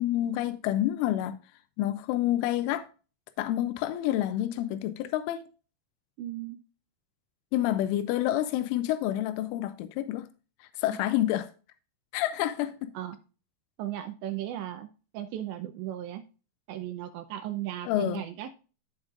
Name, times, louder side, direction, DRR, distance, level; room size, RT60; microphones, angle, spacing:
voice 1, 0.0-1.4 1.8-2.9 3.4-5.5 7.5-10.3 10.8-11.5 12.1-12.9 17.9-18.2, left 13 dB, 90° left, 3.1 m, -28 dB
voice 2, 6.2-6.6 12.9-13.2 13.8-14.9 15.1-16.2 16.7-18.6, right 12 dB, 80° right, 2.8 m, -36 dB
14.5 x 5.0 x 2.5 m
omnidirectional pair, 5.5 m